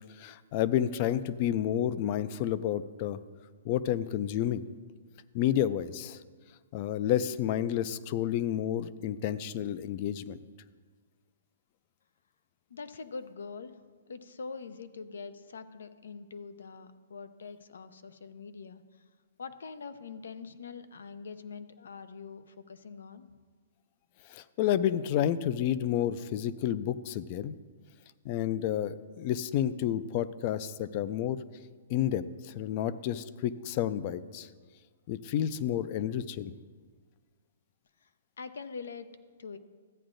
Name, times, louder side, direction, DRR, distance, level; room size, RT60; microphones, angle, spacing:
voice 1, 0.2-3.2 3.6-4.6 5.3-6.2 6.7-10.4 24.3-27.5 28.2-31.4 31.9-34.5 35.1-36.5, left 11 dB, 30° left, 15 dB, 0.3 m, -30 dB
voice 2, 12.7-13.7 14.1-18.8 19.4-23.3 38.0-38.1 38.4-39.1 39.4-39.6, left 5 dB, 85° left, 12 dB, 0.6 m, -44 dB
14.0 x 8.7 x 2.6 m, 1.5 s
hypercardioid pair, 170°, 0 cm